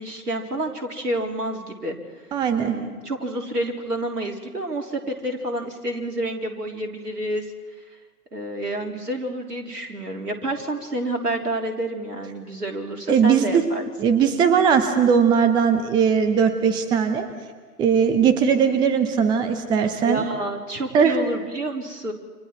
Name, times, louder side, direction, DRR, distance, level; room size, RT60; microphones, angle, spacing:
voice 1, 0.0-2.0 2.7-7.4 8.3-13.8 20.0-22.1, right 1 dB, 75° right, 1 dB, 3.8 m, -29 dB
voice 2, 2.3-2.8 13.1-13.6 14.0-17.2 17.8-20.2 20.9-21.2, right 7 dB, 10° right, 9 dB, 0.8 m, -19 dB
29.5 x 27.0 x 4.6 m, 1.4 s
figure-of-eight pair, 120°, 47 cm